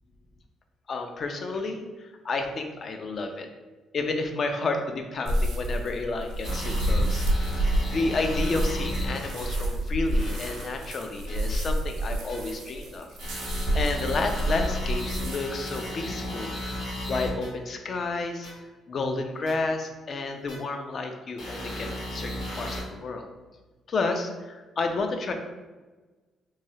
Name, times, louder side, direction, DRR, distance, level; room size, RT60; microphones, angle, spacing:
voice 1, 0.9-3.5 3.9-7.3 7.5-16.5 16.8-18.5 18.9-23.3 23.9-25.3, left 3 dB, 50° left, 5 dB, 0.4 m, -31 dB
sound 1, 5.3-15.9, right 1 dB, 90° right, 0.6 m, -29 dB
sound 2, 6.4-9.6 10.1-10.6 11.3-11.4 12.3-12.4 13.2-17.5 18.4-18.5 19.5-19.6 20.5-20.6 21.4-22.8, left 1 dB, 90° left, 1.1 m, -35 dB
3.1 x 2.3 x 2.7 m, 1.2 s
cardioid pair, 90°, 0 cm